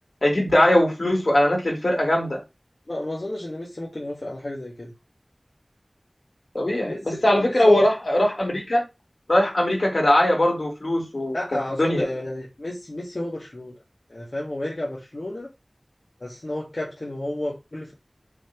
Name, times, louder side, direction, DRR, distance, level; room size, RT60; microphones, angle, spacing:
voice 1, 0.2-2.4 6.5-8.8 9.3-11.4 11.8-12.0, left 1 dB, 80° left, 3.2 m, -20 dB
voice 2, 2.9-4.9 6.7-7.0 7.6-7.8 11.3-13.8 14.1-15.5 16.2-17.9, left 1 dB, 65° left, 2.2 m, -31 dB
6.3 x 3.7 x 4.6 m
wide cardioid pair, 45°, 0 cm